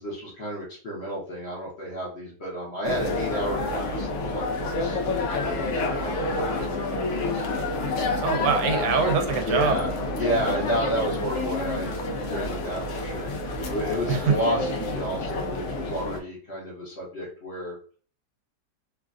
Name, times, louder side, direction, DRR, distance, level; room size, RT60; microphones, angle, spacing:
voice 1, 0.0-7.4 8.7-8.8 9.4-17.7, equal, 45° left, -4 dB, 1.0 m, -32 dB
sound 1, 2.8-16.2, left 2 dB, 85° left, 0.6 m, -29 dB
voice 2, 8.2-9.8 14.1-14.4, right 6 dB, 80° right, 5 dB, 1.2 m, -23 dB
3.1 x 2.4 x 2.4 m, 0.42 s
omnidirectional pair, 1.8 m